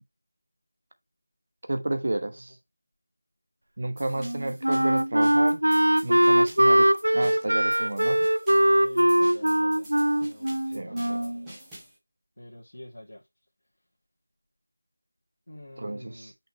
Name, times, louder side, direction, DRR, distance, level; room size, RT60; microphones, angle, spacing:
voice 1, 1.7-2.5 3.8-5.6 6.0-8.2 10.7-11.2 15.8-16.3, right 2 dB, 50° right, 1.1 m, -31 dB
sound 1, 4.0-12.0, right 1 dB, 10° right, 2.2 m, -48 dB
Wind instrument woodwind instrument, 4.2-11.5, right 1 dB, 70° right, 0.4 m, -22 dB
voice 2, 8.8-9.9 10.2-11.5 12.4-13.2 15.5-16.3, left 1 dB, 60° left, 2.0 m, -44 dB
5.9 x 5.7 x 3.1 m
figure-of-eight pair, 165°, 0 cm